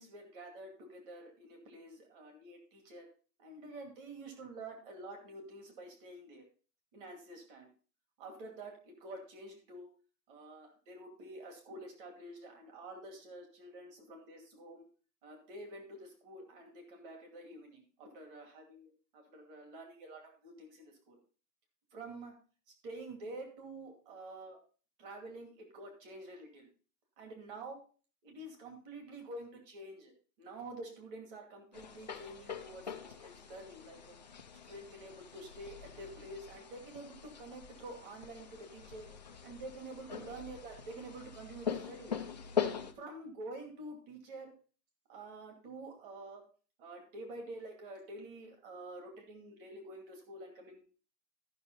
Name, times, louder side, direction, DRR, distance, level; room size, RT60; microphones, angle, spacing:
voice 1, 0.0-3.1 3.4-6.5 6.9-7.7 8.2-9.9 10.3-14.9 15.2-21.2 21.9-22.3 22.7-24.6 25.0-26.7 27.2-27.8 28.2-34.2 34.6-39.1 39.4-42.2 43.0-44.5 45.1-46.4 46.8-50.8, right 2 dB, 35° right, 3 dB, 2.5 m, -48 dB
sound 1, 31.7-42.9, left 7 dB, 30° left, 0.4 m, -42 dB
13.5 x 6.2 x 3.9 m, 0.38 s
hypercardioid pair, 170°, 49 cm